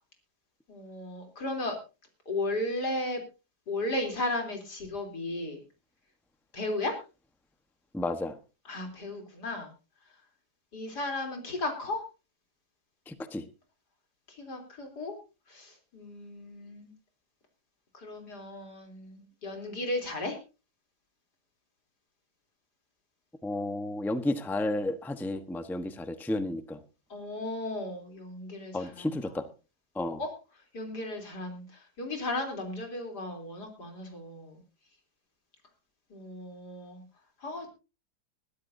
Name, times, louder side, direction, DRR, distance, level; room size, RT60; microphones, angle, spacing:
voice 1, 0.7-1.8 2.3-3.2 3.7-5.6 6.5-7.0 8.7-9.7 10.7-12.0 14.3-15.2 15.5-16.9 17.9-20.4 27.1-29.2 30.2-30.3 30.7-31.6 32.0-34.6 36.1-37.0 37.4-37.7, left 2 dB, 85° left, 3 dB, 4.1 m, -35 dB
voice 2, 7.9-8.4 13.1-13.5 23.4-26.8 28.7-29.5 29.9-30.2, left 1 dB, ahead, 9 dB, 0.8 m, -32 dB
21.5 x 13.0 x 2.7 m, 0.31 s
omnidirectional pair, 1.7 m